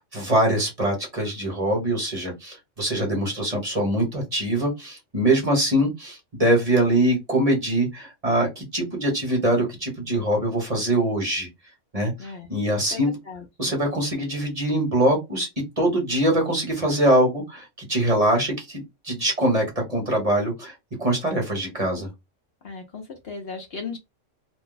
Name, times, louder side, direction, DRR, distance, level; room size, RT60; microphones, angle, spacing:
voice 1, 0.0-11.5 11.9-13.2 13.6-15.5 15.8-20.7 21.0-22.1, right 1 dB, 30° right, 1.1 m, -23 dB
voice 2, 13.3-13.7 22.6-24.0, left 4 dB, 55° left, 0.9 m, -36 dB
2.6 x 2.2 x 3.9 m
omnidirectional pair, 1.3 m